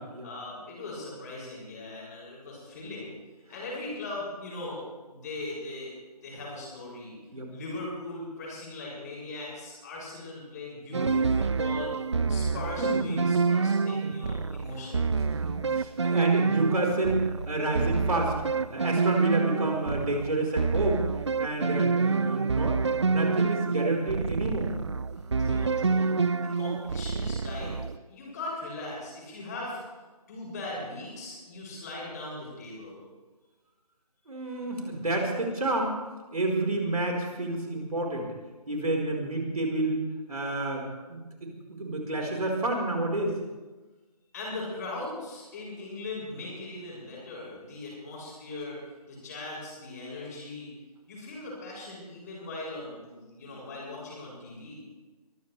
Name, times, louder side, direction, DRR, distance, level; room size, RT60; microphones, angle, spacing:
voice 1, 0.2-3.1 3.5-7.1 7.5-11.9 12.3-15.2 25.4-26.1 26.4-27.7 28.1-29.8 30.3-33.0 44.3-48.8 49.1-50.7 51.1-54.8, left 2 dB, 25° left, -5 dB, 7.1 m, -39 dB
sound 1, 10.9-28.0, right 4 dB, 45° right, 0.4 m, -27 dB
voice 2, 12.8-13.3 14.0-14.1 15.4-21.1 21.4-24.7 34.3-36.0 36.3-38.3 38.7-43.4, right 2 dB, 65° right, 0 dB, 4.6 m, -29 dB
23.0 x 15.5 x 3.4 m, 1.2 s
figure-of-eight pair, 155°, 21 cm